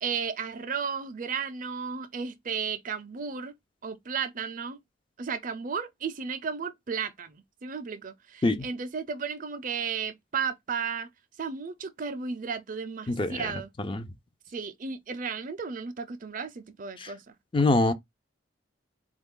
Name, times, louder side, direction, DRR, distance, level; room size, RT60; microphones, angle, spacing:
voice 1, 0.0-3.5 3.8-4.8 5.2-11.1 11.4-13.7 14.5-17.2, right 6 dB, 40° right, 0.5 m, -34 dB
voice 2, 13.1-13.5 13.8-14.1 17.0-17.1 17.5-17.9, left 2 dB, 25° left, 0.4 m, -25 dB
4.0 x 2.3 x 3.6 m
head